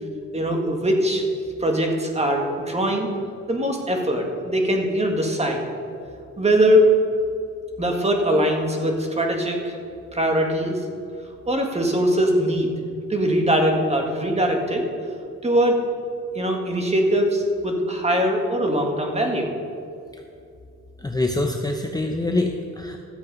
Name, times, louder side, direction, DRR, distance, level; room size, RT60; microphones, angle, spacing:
voice 1, 0.3-1.2 1.6-3.1 3.5-5.7 6.4-6.9 7.8-9.8 10.1-10.8 11.5-12.7 13.1-14.8 15.4-15.9 16.3-19.5, equal, 20° right, 2 dB, 1.9 m, -21 dB
voice 2, 21.0-23.0, left 2 dB, 15° left, 3 dB, 0.8 m, -25 dB
13.5 x 7.7 x 5.4 m, 2.5 s
cardioid pair, 90°, 30 cm